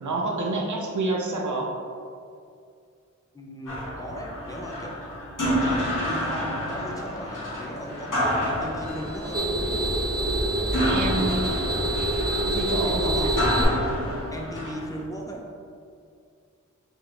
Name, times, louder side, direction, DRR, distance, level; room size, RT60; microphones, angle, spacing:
voice 1, 0.0-1.7 10.9-11.5 12.5-13.3, right 2 dB, 70° right, 0 dB, 0.6 m, -28 dB
voice 2, 3.3-5.0 5.4-9.6 12.8-13.5 14.3-15.5, equal, 10° left, -2 dB, 0.6 m, -37 dB
sound 1, 3.7-15.0, equal, 80° left, 1.2 m, -29 dB
sound 2, 5.5-14.3, left 1 dB, 30° left, 1.0 m, -41 dB
sound 3, 8.8-13.6, right 1 dB, 30° right, 1.1 m, -26 dB
3.9 x 3.0 x 3.2 m, 2.3 s
wide cardioid pair, 75°, 31 cm